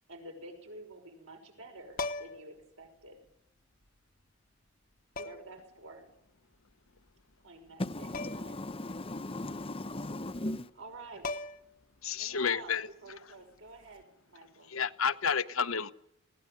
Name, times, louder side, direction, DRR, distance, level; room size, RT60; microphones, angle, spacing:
voice 1, 0.1-3.2 5.2-6.1 7.4-8.5 10.8-11.6 12.2-12.7 13.0-14.7, right 2 dB, 70° right, 6.1 m, -50 dB
sound 1, 1.9-2.5 3.9-4.0 5.2-5.6 8.1-8.6 8.9-9.0 10.8-10.9 11.2-11.8 13.8-14.0, left 3 dB, 45° left, 1.1 m, -38 dB
voice 2, 7.8-10.7, left 1 dB, 25° left, 0.9 m, -37 dB
voice 3, 12.0-12.9 14.7-15.9, left 6 dB, 75° left, 0.9 m, -30 dB
21.0 x 17.5 x 9.5 m
head